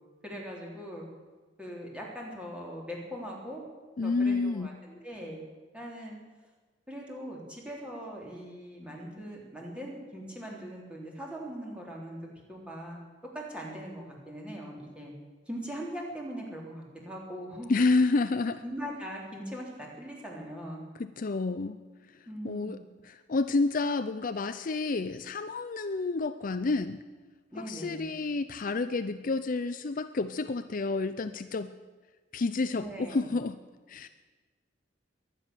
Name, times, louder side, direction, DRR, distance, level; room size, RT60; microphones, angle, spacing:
voice 1, 0.2-1.1 1.6-3.6 4.0-5.4 5.7-6.2 6.9-13.0 13.3-15.1 15.5-17.7 18.6-20.8 22.3-22.8 27.5-28.1 32.7-33.3, equal, 5° right, -2 dB, 3.4 m, -41 dB
voice 2, 4.0-4.7 17.7-18.6 21.0-21.8 22.4-22.8 23.1-27.0 27.6-31.7 32.3-33.6 33.9-34.1, left 3 dB, 45° left, 11 dB, 0.5 m, -29 dB
22.5 x 9.3 x 6.9 m, 1.3 s
head